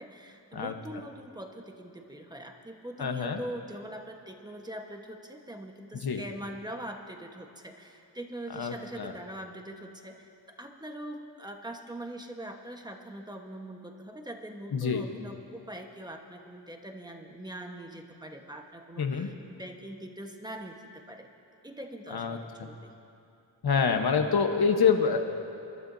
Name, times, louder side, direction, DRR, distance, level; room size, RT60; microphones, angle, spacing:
voice 1, 0.0-21.3 21.6-22.9, right 1 dB, 10° right, 3 dB, 1.2 m, -42 dB
voice 2, 3.0-3.4 5.9-6.2 8.5-9.1 14.7-15.0 19.0-19.3 22.1-22.7 23.6-25.2, left 6 dB, 60° left, 5 dB, 1.2 m, -26 dB
28.0 x 12.5 x 2.7 m, 2.7 s
wide cardioid pair, 80°, 43 cm